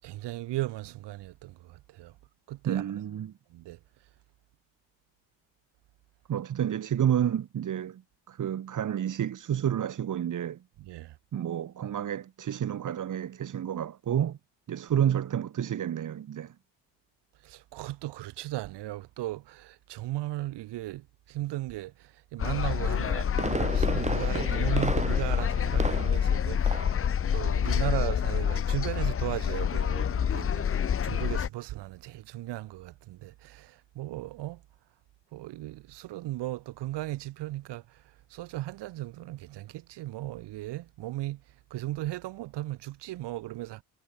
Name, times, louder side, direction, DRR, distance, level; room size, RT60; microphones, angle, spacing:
voice 1, 0.0-2.1 2.5-2.8 3.5-3.8 10.8-11.2 17.4-34.6 35.3-38.0 38.3-41.4 41.7-43.8, right 16 dB, 70° right, 1.4 m, -36 dB
voice 2, 2.6-3.3 6.3-8.0 8.3-10.6 11.3-14.4 14.7-16.5, right 10 dB, 45° right, 1.4 m, -30 dB
sound 1, 22.4-31.5, left 8 dB, 30° left, 0.8 m, -27 dB
Fireworks, 23.1-26.3 26.7-27.0 27.4-27.5, right 3 dB, 15° right, 4.3 m, -33 dB
cardioid pair, 90°, 43 cm